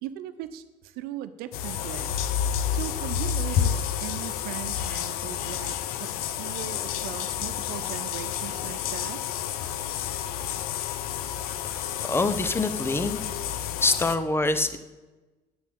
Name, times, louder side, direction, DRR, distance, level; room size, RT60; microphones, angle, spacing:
voice 1, 0.0-2.3 2.7-9.2, right 12 dB, 65° right, 12 dB, 1.0 m, -39 dB
sound 1, 1.5-14.2, left 9 dB, 65° left, 0.8 m, -30 dB
voice 2, 12.1-13.2 13.8-14.8, left 2 dB, 15° left, 11 dB, 1.0 m, -24 dB
9.2 x 8.2 x 8.3 m, 1.2 s
hypercardioid pair, 70°, 17 cm